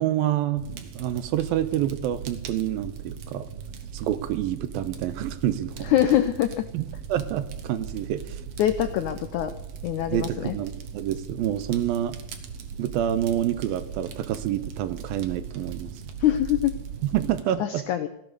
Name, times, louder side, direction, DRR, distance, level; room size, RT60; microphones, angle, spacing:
voice 1, 0.0-3.5 3.9-5.9 6.7-6.8 7.1-8.4 10.1-12.2 12.8-15.9 17.0-17.8, right 11 dB, 80° right, 12 dB, 2.6 m, -27 dB
Fire, 0.6-17.4, right 7 dB, 60° right, 1.9 m, -39 dB
voice 2, 5.8-6.7 8.6-9.5 9.8-10.6 16.2-16.7 17.6-18.1, left 12 dB, 80° left, 10 dB, 1.8 m, -23 dB
17.0 x 12.5 x 6.7 m, 0.83 s
omnidirectional pair, 4.3 m